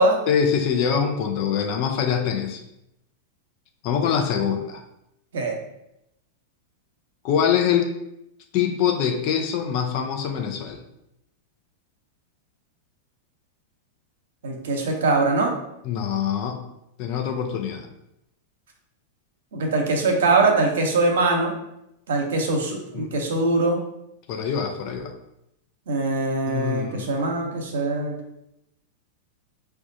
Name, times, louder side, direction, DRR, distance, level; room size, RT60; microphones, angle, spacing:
voice 1, 0.3-2.6 3.8-4.8 7.2-7.9 8.5-10.8 15.8-16.6 17.0-17.9 22.9-23.1 24.3-25.1 26.5-27.1, left 7 dB, 50° left, 4 dB, 0.5 m, -24 dB
voice 2, 14.4-15.5 19.5-21.5 22.1-23.8 25.9-28.1, right 3 dB, 75° right, 2 dB, 0.7 m, -22 dB
5.0 x 2.3 x 2.7 m, 0.83 s
hypercardioid pair, 100°, 0 cm